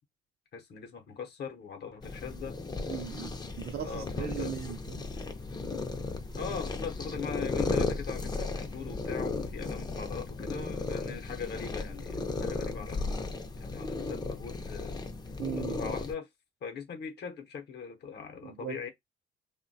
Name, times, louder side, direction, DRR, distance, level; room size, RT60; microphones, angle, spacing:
voice 1, 0.5-2.6 3.8-4.5 6.3-13.1 13.6-15.0 15.5-16.3 16.6-18.9, left 6 dB, 55° left, 0.7 m, -40 dB
sound 1, 2.0-16.1, left 3 dB, 20° left, 0.5 m, -35 dB
voice 2, 2.9-5.1 15.4-15.8 18.4-18.9, right 10 dB, 55° right, 0.5 m, -39 dB
2.9 x 2.2 x 2.6 m
cardioid pair, 90°, 20 cm